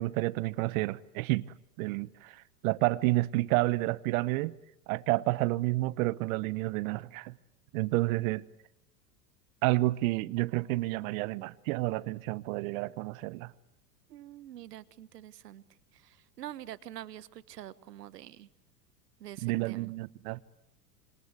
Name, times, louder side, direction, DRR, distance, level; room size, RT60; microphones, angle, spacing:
voice 1, 0.0-1.5 1.8-4.5 4.9-7.3 7.7-8.4 9.6-13.5 19.4-20.4, right 20 dB, 60° right, 1.2 m, -30 dB
voice 2, 14.1-15.6 16.0-18.5 19.2-19.9, right 12 dB, 80° right, 1.4 m, -46 dB
26.5 x 26.5 x 8.2 m
hypercardioid pair, 100°, 47 cm